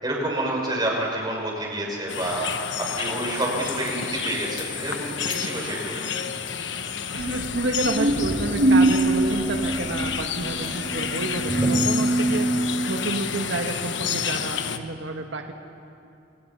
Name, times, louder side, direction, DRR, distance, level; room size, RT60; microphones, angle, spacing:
voice 1, 0.0-2.7 3.0-6.0 10.6-10.7 11.5-11.7, right 1 dB, 25° right, -1 dB, 6.1 m, -28 dB
sound 1, 2.1-14.8, left 7 dB, 75° left, 1.2 m, -30 dB
voice 2, 7.1-12.6 12.9-15.5, right 2 dB, 90° right, 3 dB, 1.7 m, -30 dB
sound 2, 7.2-12.9, right 2 dB, 70° right, 4.4 m, -24 dB
29.5 x 28.0 x 5.7 m, 2.6 s
head